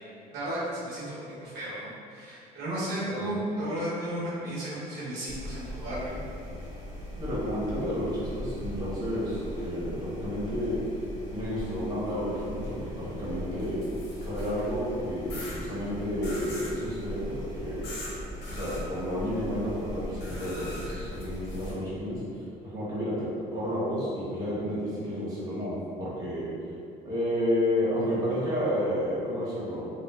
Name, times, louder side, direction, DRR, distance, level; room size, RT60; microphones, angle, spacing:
voice 1, 0.3-1.2 1.4-6.2, right 1 dB, 80° right, -9 dB, 0.9 m, -34 dB
voice 2, 3.0-3.4 7.2-10.8 11.3-13.8 14.2-17.9 18.5-22.2 22.6-26.5 27.0-29.9, equal, 20° right, -10 dB, 1.0 m, -31 dB
sound 1, 5.3-21.7, left 1 dB, 50° left, 0.5 m, -39 dB
sound 2, 13.6-14.7 15.3-15.6 16.2-16.8 17.8-18.1 18.4-18.8 20.2-21.7, left 1 dB, 85° left, 0.7 m, -42 dB
2.9 x 2.0 x 2.3 m, 2.5 s
cardioid pair, 110°, 17 cm